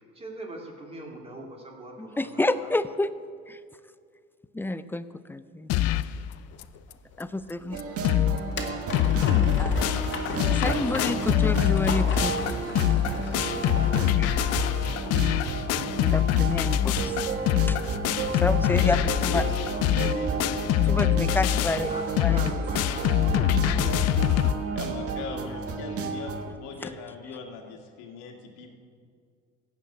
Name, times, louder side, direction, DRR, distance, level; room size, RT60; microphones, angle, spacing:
voice 1, 0.1-2.7 13.0-14.6 21.9-24.3, right 2 dB, 20° right, 0 dB, 2.4 m, -41 dB
voice 2, 2.0-3.1 3.5-3.6 4.5-5.7 7.2-7.8 9.6-9.9 10.5-12.6 14.2-14.3 16.0-17.2 17.7-17.8 18.4-19.4 20.8-22.4 26.8-26.9, left 2 dB, 5° left, 13 dB, 0.4 m, -29 dB
sound 1, 5.7-6.2 6.6-6.7 6.9-7.0 7.5-7.6 7.8-8.4 8.7-24.5, left 12 dB, 60° left, 0.5 m, -24 dB
sound 2, 6.0-18.8, left 3 dB, 40° left, 2.0 m, -38 dB
sound 3, 7.7-26.5, right 5 dB, 50° right, 1.4 m, -32 dB
voice 3, 19.3-20.7 24.7-28.7, left 5 dB, 80° left, 2 dB, 2.2 m, -38 dB
15.0 x 5.9 x 8.6 m, 2.2 s
cardioid pair, 110°, 29 cm